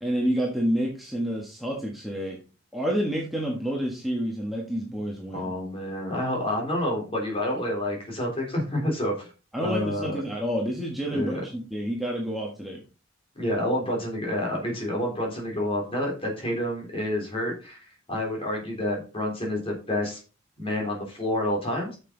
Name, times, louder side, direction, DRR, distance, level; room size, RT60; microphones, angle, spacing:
voice 1, 0.0-2.4 2.7-5.6 9.5-12.8, equal, ahead, -2 dB, 1.5 m, -29 dB
voice 2, 5.3-9.3 9.6-10.2 11.1-11.4 13.4-17.8 18.1-20.2 20.6-22.0, left 1 dB, 30° left, -1 dB, 3.7 m, -28 dB
9.1 x 6.8 x 3.9 m, 0.35 s
head